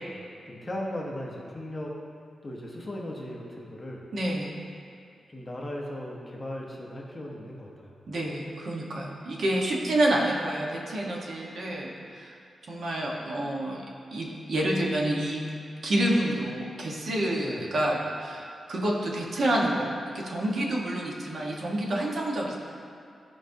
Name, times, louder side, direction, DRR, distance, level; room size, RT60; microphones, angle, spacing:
voice 1, 0.5-1.9 2.4-4.1 5.3-8.0 17.4-17.7, left 1 dB, 15° left, -3 dB, 0.9 m, -37 dB
voice 2, 4.1-4.5 8.1-12.3 12.7-13.8 14.1-15.4 15.8-22.5, right 1 dB, 55° right, -2 dB, 1.1 m, -28 dB
13.5 x 5.1 x 2.7 m, 2.4 s
wide cardioid pair, 175°, 0 cm